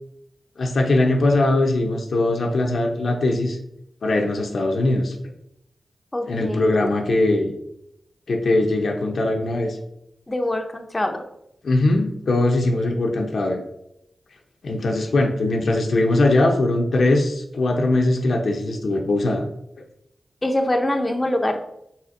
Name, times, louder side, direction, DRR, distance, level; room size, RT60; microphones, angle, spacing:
voice 1, 0.6-3.6 4.0-5.1 6.3-7.5 8.3-9.8 11.6-13.6 14.6-19.5, left 2 dB, 75° left, 2 dB, 0.6 m, -20 dB
voice 2, 6.1-6.7 10.3-11.2 20.4-21.6, left 1 dB, 25° left, 4 dB, 0.6 m, -24 dB
4.2 x 4.1 x 2.5 m, 0.79 s
cardioid pair, 40°, 0 cm